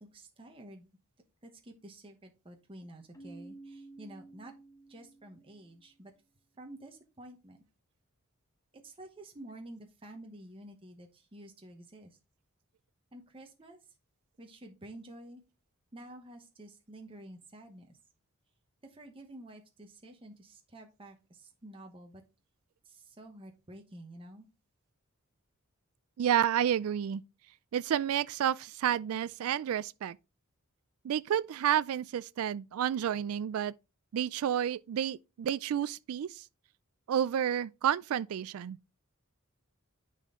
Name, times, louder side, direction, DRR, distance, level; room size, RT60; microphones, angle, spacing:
voice 1, 0.1-0.9 1.4-4.5 4.9-6.1 6.6-7.6 8.7-12.2 13.1-13.8 14.4-15.4 15.9-18.0 18.8-22.2 22.8-24.5, right 1 dB, 25° right, 1.0 m, -50 dB
Keyboard (musical), 3.1-5.8, right 2 dB, 15° left, 1.3 m, -52 dB
voice 2, 26.2-27.2 27.7-30.2 31.0-33.7 34.1-36.4 37.1-38.8, right 9 dB, 75° right, 0.3 m, -30 dB
10.0 x 4.2 x 3.7 m
head